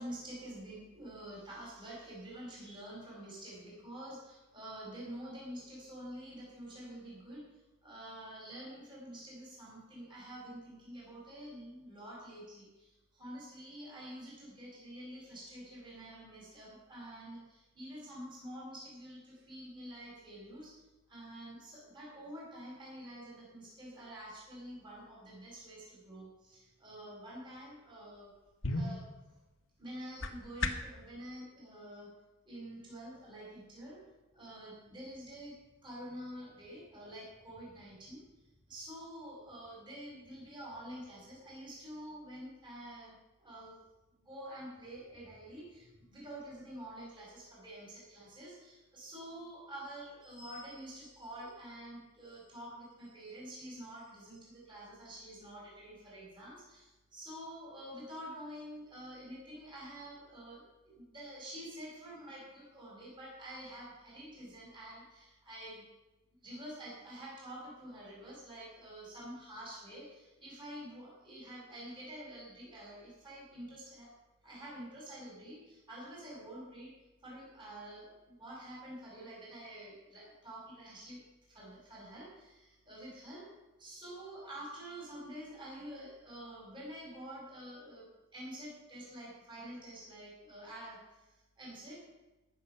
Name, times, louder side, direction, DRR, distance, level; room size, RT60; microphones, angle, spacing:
voice 1, 0.0-7.4 7.8-20.8 21.1-28.3 28.7-29.4 29.8-32.1 32.5-34.0 34.3-38.2 38.7-43.8 44.2-65.8 66.4-74.1 74.4-76.9 77.2-81.2 81.5-83.5 83.8-92.0, right 1 dB, 25° right, -5 dB, 5.2 m, -48 dB
sound 1, 28.1-31.0, left 2 dB, 80° left, 1.1 m, -38 dB
17.5 x 7.2 x 5.7 m, 1.1 s
head